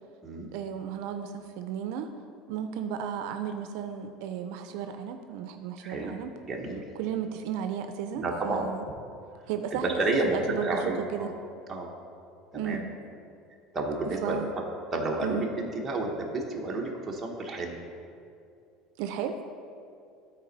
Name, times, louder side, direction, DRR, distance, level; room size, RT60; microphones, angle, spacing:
voice 1, 0.5-2.1 2.5-6.3 7.0-8.8 9.5-10.8 11.1-11.3 12.5-12.8 14.2-14.5 15.2-15.5 19.0-19.3, right 8 dB, 70° right, 7 dB, 0.4 m, -34 dB
voice 2, 5.8-6.2 6.5-6.8 8.1-8.7 9.7-11.3 11.7-11.9 12.5-12.8 13.7-14.4 14.9-17.8, right 2 dB, 15° right, -1 dB, 0.9 m, -30 dB
12.5 x 4.2 x 4.0 m, 2.4 s
cardioid pair, 165°, 0 cm